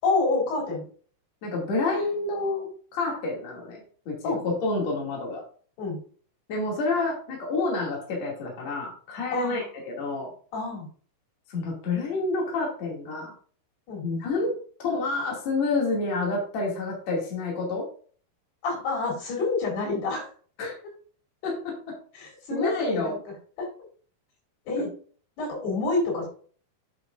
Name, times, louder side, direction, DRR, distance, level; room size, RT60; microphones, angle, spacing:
voice 1, 0.0-0.9 4.2-4.4 5.8-6.0 9.3-9.7 10.5-10.9 13.9-14.0 18.6-20.3 22.1-23.7 24.7-24.9 25.4-26.3, left 3 dB, 85° left, -2 dB, 6.3 m, -28 dB
voice 2, 1.4-4.3 4.6-5.4 6.5-10.3 11.5-13.3 14.0-14.6 14.8-17.9 20.6-20.7 21.4-22.0 22.5-23.2, left 3 dB, 45° left, -2 dB, 3.4 m, -29 dB
9.4 x 6.8 x 2.6 m, 0.43 s
omnidirectional pair, 4.5 m